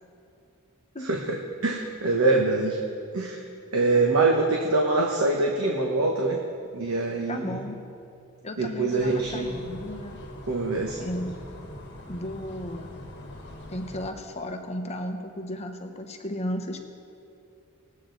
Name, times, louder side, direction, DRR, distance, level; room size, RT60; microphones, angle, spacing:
voice 1, 1.0-2.8 3.1-3.4 3.7-6.4 6.7-7.6 8.6-9.6 10.5-11.0, right 3 dB, 70° right, 0 dB, 1.0 m, -24 dB
voice 2, 7.3-7.8 8.4-10.2 11.0-11.3 12.1-12.9 13.7-16.8, left 1 dB, 30° left, 5 dB, 0.9 m, -34 dB
sound 1, 9.0-14.1, left 1 dB, 50° left, 1.5 m, -42 dB
20.0 x 8.4 x 3.9 m, 2.6 s
head